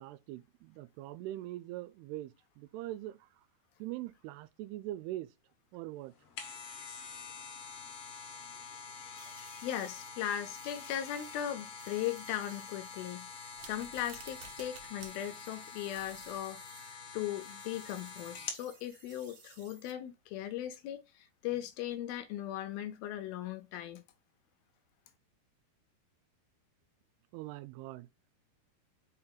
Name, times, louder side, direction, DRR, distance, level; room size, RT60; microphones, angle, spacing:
voice 1, 0.0-3.3 3.8-5.3 5.7-6.1 27.3-28.1, right 15 dB, 90° right, 2.6 m, -42 dB
sound 1, 6.1-18.7 19.1-19.2, left 5 dB, 65° left, 1.4 m, -47 dB
voice 2, 9.0-13.3 13.6-16.9 17.1-24.0, left 11 dB, 80° left, 2.3 m, -38 dB
sound 2, 9.2-17.0 17.2-19.9, right 4 dB, 50° right, 1.6 m, -59 dB
sound 3, 13.5-15.1 15.4-15.5 15.9-16.4, right 5 dB, 65° right, 2.0 m, -52 dB
5.8 x 4.4 x 3.8 m
omnidirectional pair, 4.6 m